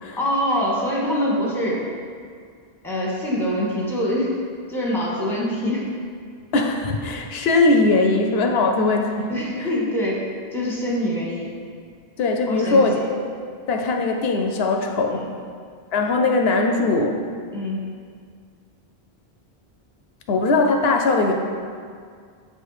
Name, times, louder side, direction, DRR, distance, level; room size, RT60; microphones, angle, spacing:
voice 1, 0.2-1.8 2.8-4.3 4.7-5.9 9.3-10.2 10.5-11.6 12.5-13.1 15.1-15.3 17.5-17.8, equal, ahead, -4 dB, 1.0 m, -24 dB
voice 2, 6.5-9.3 9.6-9.7 12.2-13.0 13.7-15.2 15.9-17.2 20.3-21.3, left 3 dB, 75° left, 3 dB, 0.8 m, -20 dB
7.3 x 3.4 x 4.6 m, 2.1 s
omnidirectional pair, 1.0 m